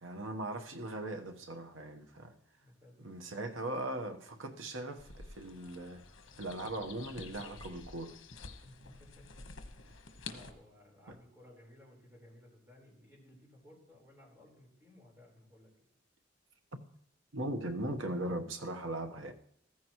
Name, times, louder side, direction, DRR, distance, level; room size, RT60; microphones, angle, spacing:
voice 1, 0.0-2.3 3.0-6.0 6.4-8.2 17.3-19.3, right 1 dB, 85° right, 1.2 m, -39 dB
voice 2, 2.5-3.1 8.6-9.3 9.9-15.7, left 1 dB, 15° right, 4.3 m, -58 dB
sound 1, 5.0-10.5, left 4 dB, 75° left, 1.3 m, -49 dB
15.0 x 14.5 x 3.1 m
head